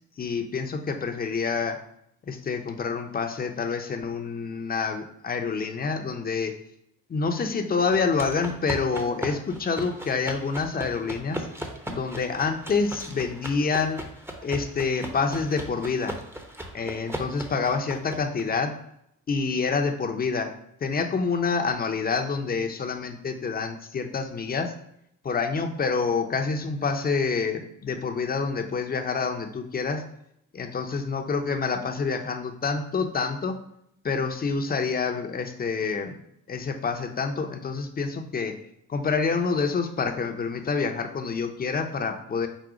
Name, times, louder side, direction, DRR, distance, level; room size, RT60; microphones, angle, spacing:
voice 1, 0.2-1.8 2.3-6.5 7.1-11.5 11.9-14.0 14.4-16.2 16.7-18.8 19.3-20.5 20.8-24.7 25.2-30.0 30.5-33.6 34.0-36.2 36.5-38.6 38.9-42.5, left 5 dB, 30° left, 5 dB, 0.6 m, -27 dB
sound 1, 7.9-18.4, right 1 dB, 10° right, 0.7 m, -38 dB
5.0 x 2.1 x 4.8 m, 0.75 s
cardioid pair, 90°, 30 cm